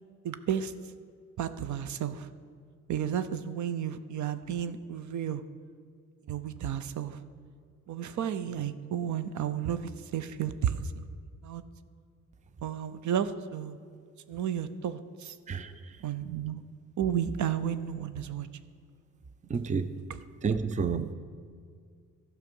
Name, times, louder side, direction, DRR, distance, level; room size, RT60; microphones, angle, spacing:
voice 1, 0.2-0.7 1.4-2.3 2.9-5.4 6.3-7.2 7.9-11.0 11.4-11.6 12.6-13.8 14.3-15.4 16.0-16.6 17.0-18.5, right 9 dB, 70° right, 12 dB, 0.6 m, -32 dB
voice 2, 15.5-16.0 19.5-19.9 20.4-21.1, right 5 dB, 25° right, 11 dB, 0.5 m, -30 dB
12.5 x 5.9 x 5.3 m, 2.1 s
cardioid pair, 85°, 30 cm